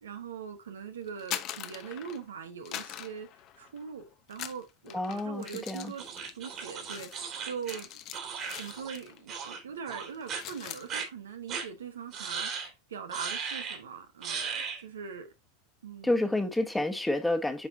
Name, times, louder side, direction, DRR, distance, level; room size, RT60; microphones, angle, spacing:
voice 1, 0.0-3.3 3.6-6.0 6.3-7.9 8.6-15.3 15.8-16.3, right 6 dB, 85° right, 1.2 m, -42 dB
sound 1, 1.1-2.3 2.7-3.9 4.3-9.2 9.5-9.8 10.1-10.9, left 12 dB, 50° left, 0.8 m, -42 dB
voice 2, 4.9-5.9 16.0-17.7, left 2 dB, 5° left, 1.2 m, -29 dB
sound 2, 6.0-9.0 9.3-9.6 9.9-10.4 10.9-11.1 11.5-11.7 12.1-12.7 13.1-13.8 14.2-14.8, right 6 dB, 45° right, 2.7 m, -37 dB
8.6 x 4.7 x 2.7 m
hypercardioid pair, 95°, 0 cm